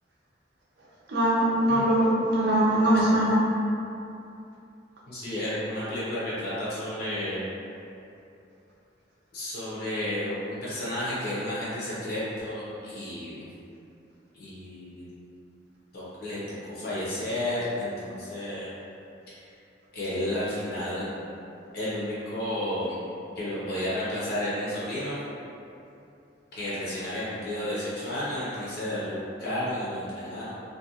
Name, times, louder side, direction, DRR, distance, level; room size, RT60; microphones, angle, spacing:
voice 1, 1.1-3.4, right 1 dB, 65° right, -6 dB, 0.6 m, -22 dB
voice 2, 2.8-3.2 5.1-7.4 9.3-13.4 14.3-15.1 15.9-18.7 19.9-21.1 21.7-23.0 23.4-25.2 26.5-30.5, left 1 dB, 55° left, -9 dB, 0.6 m, -32 dB
2.4 x 2.2 x 2.7 m, 2.7 s
head